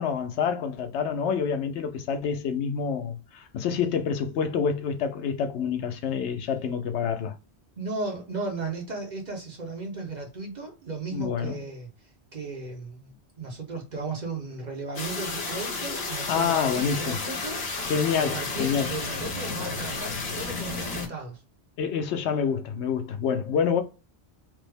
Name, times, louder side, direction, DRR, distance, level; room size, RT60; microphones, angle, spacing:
voice 1, 0.0-7.3 11.1-11.6 16.3-17.2 17.8-18.9 21.8-23.8, left 6 dB, 85° left, 0.9 m, -27 dB
voice 2, 7.8-11.9 12.3-21.4, right 3 dB, 45° right, 1.0 m, -36 dB
sound 1, 14.9-21.1, left 3 dB, 65° left, 1.1 m, -32 dB
3.3 x 2.0 x 3.3 m
omnidirectional pair, 1.1 m